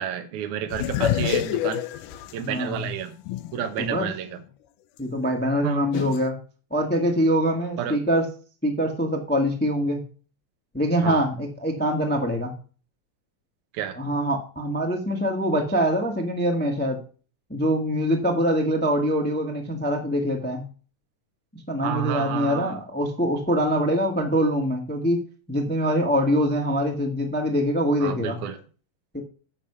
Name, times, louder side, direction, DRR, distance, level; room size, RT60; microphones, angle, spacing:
voice 1, 0.0-1.8 2.3-3.2 3.5-4.4 5.6-5.9 7.8-8.0 11.0-11.2 13.7-14.0 21.8-22.8 28.0-28.6, right 9 dB, 75° right, 7 dB, 2.4 m, -30 dB
sound 1, 0.7-3.8 4.3-4.4 5.9-6.2, left 12 dB, 80° left, 2.1 m, -27 dB
voice 2, 2.4-2.9 3.8-4.1 5.0-6.4 6.7-8.3 8.6-10.0 10.7-12.5 13.9-17.0 17.5-20.6 21.5-25.2 25.5-28.4 29.1-29.2, equal, 15° left, 2 dB, 0.4 m, -24 dB
8.9 x 6.1 x 5.6 m, 0.38 s
omnidirectional pair, 3.7 m